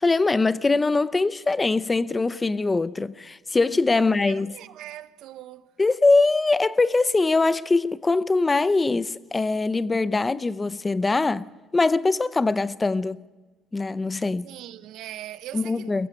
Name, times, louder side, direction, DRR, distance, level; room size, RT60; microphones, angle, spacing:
voice 1, 0.0-4.5 5.8-13.2 13.7-14.5 15.5-16.1, left 3 dB, 15° left, 0.6 m, -22 dB
voice 2, 3.9-5.7 14.4-15.9, right 13 dB, 70° right, 0.9 m, -40 dB
23.5 x 15.0 x 9.8 m
cardioid pair, 155°, 0 cm